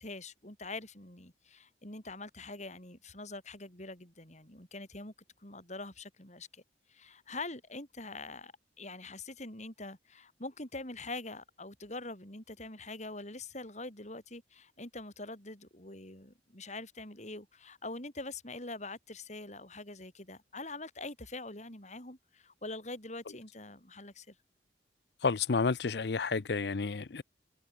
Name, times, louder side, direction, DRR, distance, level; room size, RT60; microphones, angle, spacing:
voice 1, 0.0-5.1 5.4-6.6 6.9-8.5 8.8-24.3, left 2 dB, 40° left, 6.6 m, -44 dB
voice 2, 25.2-27.2, left 4 dB, 65° left, 0.6 m, -30 dB
head